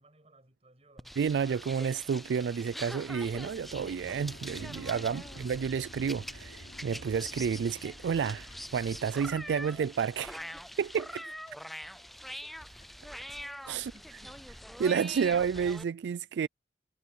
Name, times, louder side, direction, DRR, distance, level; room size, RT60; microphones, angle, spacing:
voice 1, 0.0-1.2 11.1-11.2 12.4-12.5 13.7-14.5, right 1 dB, 35° right, 6.5 m, -61 dB
sound 1, 1.0-15.8, equal, ahead, 0.4 m, -44 dB
voice 2, 1.2-10.5 10.8-11.2 13.6-13.9 14.8-16.5, right 6 dB, 75° right, 0.3 m, -30 dB
sound 2, 2.9-9.9, left 1 dB, 80° left, 5.2 m, -51 dB
Typing, 7.6-14.6, left 3 dB, 40° left, 6.0 m, -63 dB
head